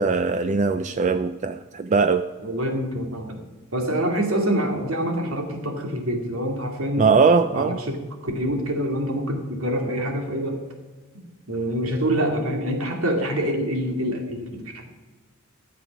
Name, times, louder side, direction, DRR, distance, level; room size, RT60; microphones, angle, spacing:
voice 1, 0.0-2.2 7.0-7.8, right 4 dB, 35° right, 10 dB, 0.4 m, -20 dB
voice 2, 2.4-3.4 3.7-7.1 7.5-10.6 11.5-14.8, equal, 90° right, 3 dB, 2.4 m, -26 dB
13.0 x 7.8 x 6.0 m, 1.3 s
head